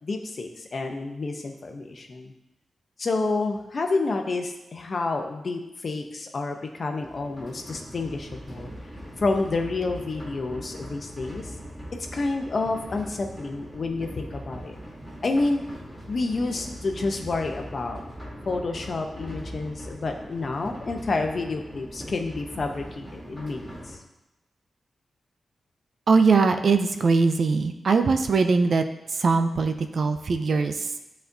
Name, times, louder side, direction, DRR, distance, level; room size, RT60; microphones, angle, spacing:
voice 1, 0.0-2.3 3.0-8.7 9.2-11.5 12.1-14.8 15.2-15.6 16.1-18.0 18.4-24.0, left 3 dB, 40° left, 4 dB, 0.7 m, -29 dB
sound 1, 7.0-24.0, equal, 5° right, 2.4 m, -41 dB
voice 2, 26.1-28.8 29.1-30.9, right 4 dB, 50° right, 7 dB, 0.4 m, -21 dB
12.5 x 4.2 x 2.7 m, 0.94 s
wide cardioid pair, 175°, 0 cm